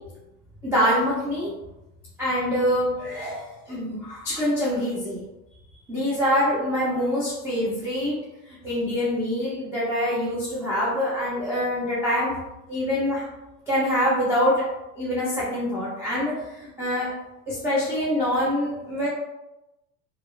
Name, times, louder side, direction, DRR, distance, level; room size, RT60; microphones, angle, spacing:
voice 1, 0.6-1.5 2.2-5.2 5.9-8.1 8.5-12.3 12.7-13.2 13.7-14.7 15.0-17.1 17.5-19.1, equal, 5° right, -9 dB, 0.3 m, -25 dB
2.8 x 2.1 x 2.3 m, 0.97 s
hypercardioid pair, 100°, 46 cm